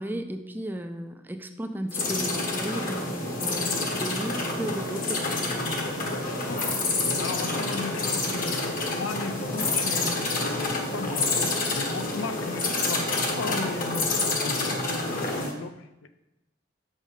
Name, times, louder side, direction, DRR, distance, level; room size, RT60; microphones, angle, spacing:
voice 1, 0.0-5.3, right 1 dB, 10° right, 7 dB, 0.4 m, -34 dB
sound 1, 1.9-15.5, left 2 dB, 45° left, 1.1 m, -28 dB
voice 2, 7.2-11.4 11.7-16.1, left 4 dB, 80° left, 9 dB, 0.6 m, -36 dB
6.4 x 5.4 x 4.9 m, 0.94 s
head